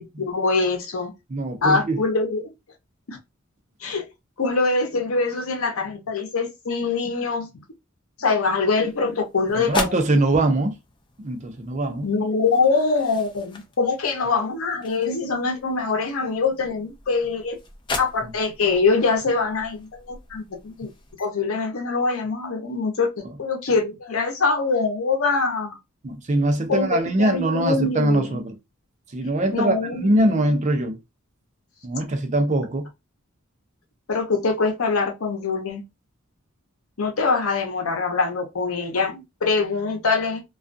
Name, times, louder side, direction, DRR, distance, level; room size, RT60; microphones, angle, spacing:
voice 1, 0.0-1.1 1.6-2.5 3.1-3.2 3.8-4.0 4.4-7.5 8.2-10.0 12.0-17.6 18.0-20.9 21.2-25.8 26.7-28.4 29.5-30.5 34.1-35.8 37.0-40.4, left 4 dB, 85° left, 0.7 m, -24 dB
voice 2, 1.3-2.0 9.5-10.7 11.2-12.1 18.2-18.3 26.0-28.5 29.1-31.0 31.8-32.9, right 1 dB, 35° right, 0.5 m, -22 dB
sound 1, 8.8-21.3, left 3 dB, 25° left, 0.4 m, -38 dB
2.3 x 2.2 x 2.5 m
head